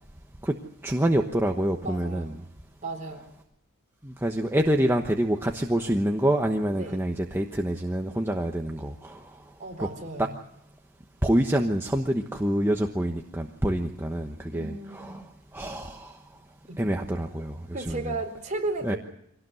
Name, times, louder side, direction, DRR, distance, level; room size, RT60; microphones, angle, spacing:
voice 1, 0.8-2.3 4.0-9.2 9.8-9.9 11.2-15.1 15.5-16.1 16.8-17.6 17.9-18.0 18.8-19.0, right 1 dB, 10° right, 3 dB, 1.1 m, -26 dB
voice 2, 1.8-2.3 2.8-3.3 6.7-7.0 9.6-10.4 14.5-15.2 16.7-16.9 17.7-19.0, right 2 dB, 35° right, 2 dB, 4.1 m, -34 dB
24.5 x 18.0 x 7.9 m, 0.77 s
head